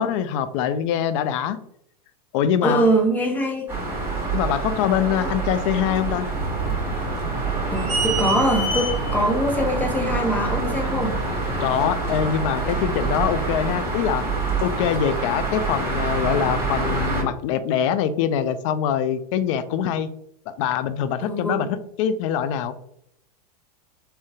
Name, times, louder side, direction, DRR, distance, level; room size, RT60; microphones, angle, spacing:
voice 1, 0.0-1.6 2.3-2.9 4.3-6.3 11.6-14.2 14.6-20.1 20.5-22.7, left 9 dB, 50° left, 13 dB, 0.4 m, -24 dB
voice 2, 2.6-3.7 5.1-5.3 7.7-11.2 21.2-21.7, right 1 dB, 10° left, 1 dB, 0.7 m, -23 dB
sound 1, 3.7-17.2, right 3 dB, 10° right, 1.0 m, -27 dB
sound 2, 6.3-11.8, right 2 dB, 65° right, 1.0 m, -30 dB
3.6 x 2.1 x 2.7 m, 0.73 s
hypercardioid pair, 115°, 21 cm